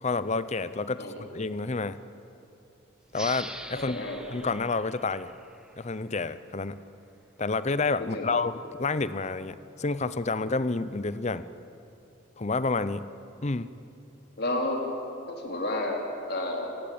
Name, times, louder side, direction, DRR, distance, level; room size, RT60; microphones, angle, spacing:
voice 1, 0.0-2.0 3.1-4.0 4.3-5.3 5.8-6.8 7.4-8.5 8.8-11.4 12.4-13.1 13.4-13.7, left 3 dB, 35° left, 14 dB, 0.7 m, -29 dB
sound 1, 3.1-6.4, right 1 dB, 5° right, 1.4 m, -43 dB
voice 2, 3.7-4.2 8.1-8.3 14.4-14.8 15.3-16.7, left 1 dB, 55° left, 1 dB, 4.1 m, -31 dB
29.5 x 19.5 x 8.8 m, 2.8 s
head